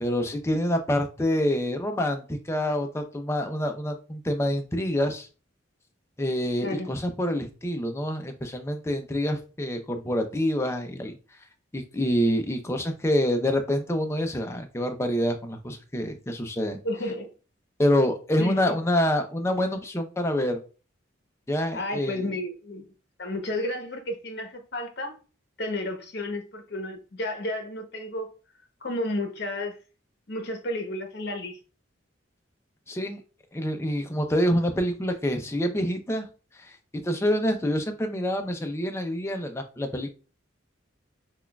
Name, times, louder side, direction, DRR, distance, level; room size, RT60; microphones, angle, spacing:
voice 1, 0.0-5.3 6.2-11.1 11.7-16.8 17.8-20.6 21.5-22.2 32.9-33.2 33.5-36.3 36.6-40.1, equal, 15° left, 0.4 m, -26 dB
voice 2, 6.6-6.9 16.8-17.3 18.4-18.8 21.7-22.9 23.2-25.1 25.6-28.3 28.8-29.7 30.3-31.6, left 1 dB, 55° left, 0.8 m, -32 dB
5.8 x 2.3 x 2.2 m
head